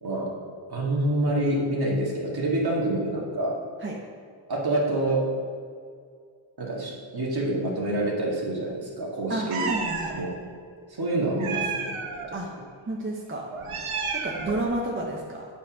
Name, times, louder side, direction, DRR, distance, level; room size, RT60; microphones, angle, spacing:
voice 1, 0.0-0.3 0.7-3.6 4.5-5.2 6.6-9.7 10.1-10.3 10.9-11.9, right 1 dB, 50° right, -3 dB, 2.1 m, -27 dB
voice 2, 9.3-10.2 12.3-12.5 12.9-13.4 13.7-15.5, right 2 dB, 25° right, -2 dB, 1.0 m, -31 dB
Meow, 9.5-10.1 11.4-12.3 13.5-14.6, right 5 dB, 90° right, 1.0 m, -31 dB
8.3 x 4.7 x 6.2 m, 2.1 s
cardioid pair, 70°, 49 cm